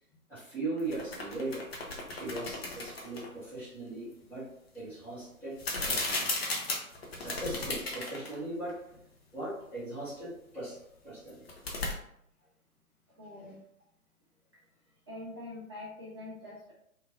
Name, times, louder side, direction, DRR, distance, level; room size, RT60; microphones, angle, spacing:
voice 1, 0.3-1.7 2.1-4.5 4.7-5.6 5.8-6.3 7.2-8.8 9.3-10.8 11.0-11.4 13.4-13.5, right 2 dB, 5° left, -12 dB, 1.1 m, -39 dB
sound 1, 0.8-3.3 5.6-8.4 8.7-8.8 11.3-11.9, left 2 dB, 45° left, 0.8 m, -35 dB
voice 2, 13.2-13.6 15.1-16.7, left 2 dB, 20° right, -9 dB, 0.5 m, -44 dB
3.6 x 2.7 x 2.7 m, 0.70 s
figure-of-eight pair, 135°, 43 cm